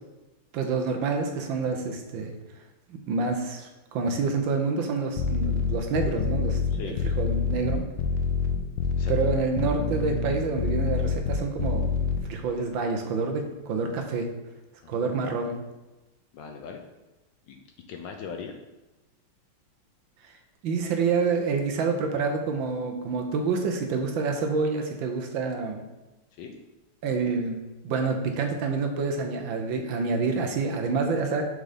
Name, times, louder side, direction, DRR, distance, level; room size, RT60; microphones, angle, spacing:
voice 1, 0.5-2.3 3.1-7.8 9.1-14.3 14.9-15.5 20.2-20.4 20.6-25.8 27.0-27.6 27.8-31.4, right 4 dB, 70° right, 4 dB, 1.4 m, -28 dB
sound 1, 5.2-12.2, left 6 dB, 85° left, 1.6 m, -26 dB
voice 2, 8.9-9.4 14.8-15.2 16.3-16.8 17.5-17.6 17.9-18.5 26.4-26.5, left 6 dB, 70° left, 4 dB, 1.2 m, -39 dB
6.6 x 3.8 x 4.9 m, 1.1 s
omnidirectional pair, 2.4 m